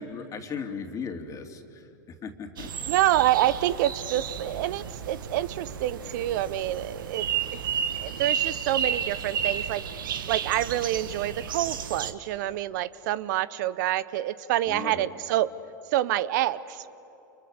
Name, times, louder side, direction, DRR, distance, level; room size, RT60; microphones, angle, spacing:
voice 1, 0.0-1.9 2.2-2.9 14.7-15.1, left 5 dB, 30° left, 4 dB, 2.8 m, -37 dB
sound 1, 2.6-12.1, right 8 dB, 75° right, 1.6 m, -32 dB
voice 2, 2.9-7.3 7.5-7.7 8.0-9.8 10.3-15.5 15.9-16.9, right 14 dB, 60° right, 17 dB, 0.8 m, -27 dB
29.5 x 29.0 x 6.6 m, 2.9 s
hypercardioid pair, 95°, 11 cm